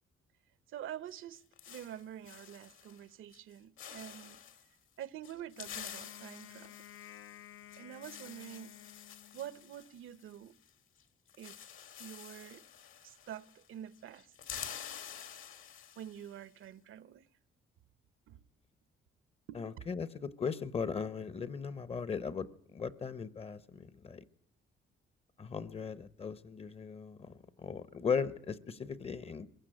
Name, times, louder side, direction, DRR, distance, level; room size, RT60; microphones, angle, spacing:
voice 1, 0.7-4.4 5.0-6.7 7.8-8.7 9.3-10.5 11.4-11.6 12.0-12.6 13.0-14.3 16.0-17.2 18.3-18.4 19.5-19.6, right 10 dB, 70° right, 0.9 m, -47 dB
sound 1, 1.1-3.0 3.3-3.5 3.8-4.7 5.2-10.7 11.0-11.1 11.3-13.7 13.9-16.4, left 9 dB, 70° left, 2.2 m, -49 dB
Wind instrument woodwind instrument, 5.5-9.8, left 12 dB, 90° left, 1.0 m, -54 dB
voice 2, 19.5-24.2 25.4-29.5, left 6 dB, 30° left, 0.8 m, -38 dB
22.0 x 15.5 x 10.0 m
cardioid pair, 165°, 21 cm